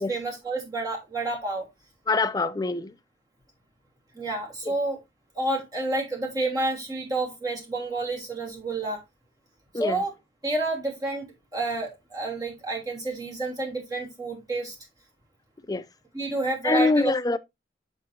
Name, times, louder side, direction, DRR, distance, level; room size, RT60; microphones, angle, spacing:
voice 1, 0.1-1.7 4.1-5.0 5.3-9.0 9.7-10.1 10.4-14.7 16.1-17.1, right 2 dB, 20° right, 3.2 m, -29 dB
voice 2, 2.1-2.9 9.7-10.0 15.7-15.8 16.6-17.4, left 3 dB, 20° left, 0.4 m, -24 dB
7.3 x 6.8 x 2.8 m
head